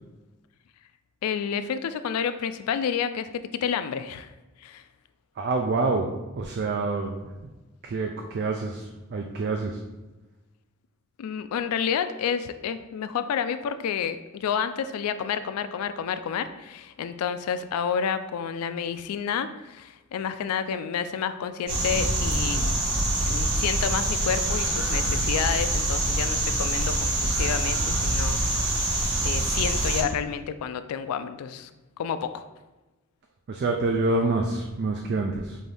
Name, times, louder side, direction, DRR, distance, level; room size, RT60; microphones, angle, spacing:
voice 1, 1.2-3.3 3.6-4.3 4.6-4.8 11.2-22.7 23.3-31.7 32.0-32.5, left 7 dB, 90° left, 11 dB, 0.3 m, -30 dB
voice 2, 5.4-6.1 6.4-7.5 7.8-9.8 33.5-35.6, right 3 dB, 50° right, 2 dB, 0.4 m, -27 dB
sound 1, 21.7-30.0, right 1 dB, 90° right, 1.4 m, -25 dB
5.5 x 2.6 x 3.3 m, 1.1 s
head